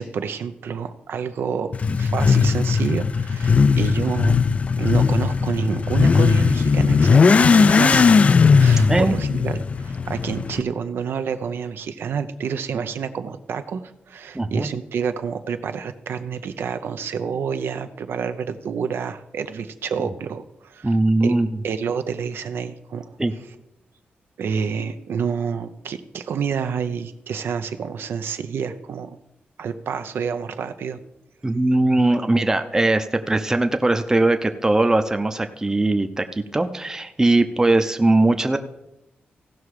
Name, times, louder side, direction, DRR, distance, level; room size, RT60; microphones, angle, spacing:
voice 1, 0.0-4.4 4.7-8.2 8.6-21.0 21.2-21.3 21.6-23.1 24.4-29.2 29.6-31.0, right 6 dB, 75° right, 9 dB, 0.6 m, -28 dB
Motorcycle / Accelerating revving vroom, 1.7-10.6, left 5 dB, 35° left, 0.3 m, -17 dB
voice 2, 14.3-14.7 20.0-20.1 20.8-21.5 23.2-23.3 31.4-38.6, right 2 dB, 15° right, 8 dB, 0.6 m, -20 dB
16.0 x 5.8 x 4.8 m, 0.88 s
wide cardioid pair, 140°, 4 cm